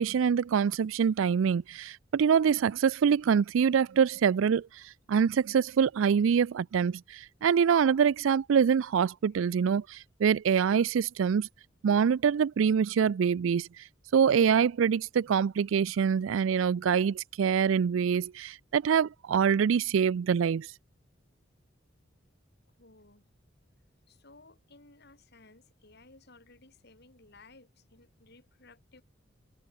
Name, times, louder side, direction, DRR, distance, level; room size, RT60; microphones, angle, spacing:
voice 1, 0.0-11.5 11.8-13.8 14.1-20.7, right 7 dB, 80° right, 0.4 m, -25 dB
voice 2, 22.8-23.3 24.1-29.0, left 3 dB, 55° left, 4.5 m, -57 dB
head